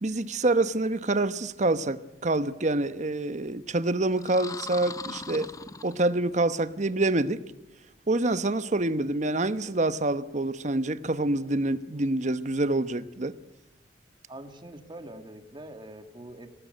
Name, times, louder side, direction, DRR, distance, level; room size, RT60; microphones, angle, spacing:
voice 1, 0.0-5.5 5.8-7.4 8.1-13.3, right 2 dB, 45° right, 13 dB, 1.0 m, -26 dB
sound 1, 4.1-6.4, left 4 dB, 20° left, 0.7 m, -40 dB
voice 2, 14.3-16.5, right 1 dB, 25° right, 7 dB, 2.1 m, -44 dB
25.5 x 18.0 x 7.8 m, 1.0 s
head